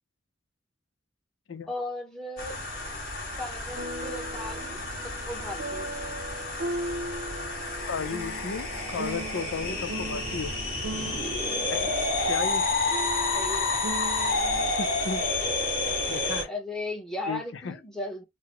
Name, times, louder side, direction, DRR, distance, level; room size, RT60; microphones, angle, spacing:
voice 1, 1.7-2.6 3.4-5.9 10.9-11.2 13.3-13.9 16.5-18.2, left 2 dB, 5° left, 1.1 m, -37 dB
sound 1, 2.4-16.4, left 2 dB, 50° left, 1.6 m, -30 dB
sound 2, 3.7-14.7, right 1 dB, 85° right, 0.7 m, -38 dB
voice 2, 7.9-10.5 11.7-12.7 14.8-15.4 16.1-16.5 17.3-17.8, left 5 dB, 90° left, 0.6 m, -34 dB
3.9 x 2.1 x 3.0 m
head